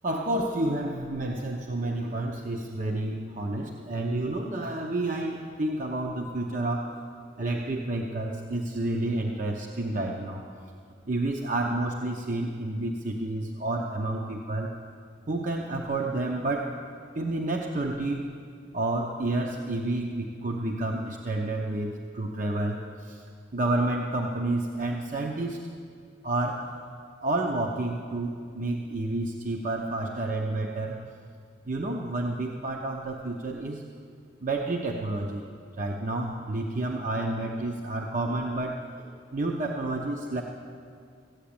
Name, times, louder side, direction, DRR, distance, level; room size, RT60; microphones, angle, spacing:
voice 1, 0.0-7.0 7.4-10.4 11.1-14.8 15.3-16.8 17.1-18.3 18.7-23.3 23.5-25.7 26.2-26.7 27.2-31.0 31.7-33.8 34.4-35.5 35.8-40.4, right 2 dB, 45° right, 1 dB, 0.8 m, -30 dB
14.5 x 8.5 x 8.7 m, 2.2 s
head